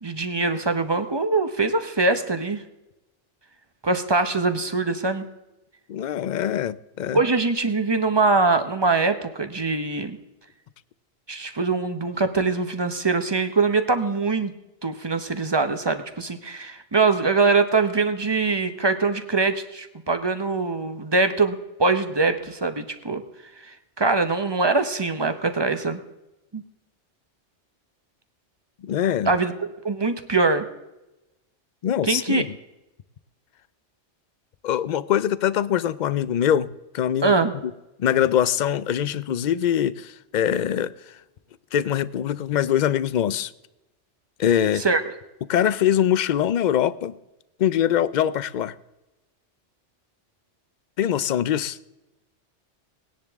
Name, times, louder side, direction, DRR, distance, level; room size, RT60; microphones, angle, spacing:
voice 1, 0.0-2.6 3.8-5.2 7.1-10.2 11.3-14.5 14.8-23.2 23.6-26.0 26.5-26.6 29.2-29.5 29.8-30.7 32.0-32.4 37.2-37.5 44.8-45.0, right 3 dB, 25° right, 0.8 m, -23 dB
voice 2, 5.9-7.2 28.8-29.4 31.8-32.5 34.6-37.3 38.0-40.9 41.7-43.5 44.4-44.8 45.5-47.1 47.6-48.7 51.0-51.8, left 10 dB, 55° left, 0.5 m, -23 dB
18.0 x 10.5 x 3.5 m
omnidirectional pair, 1.2 m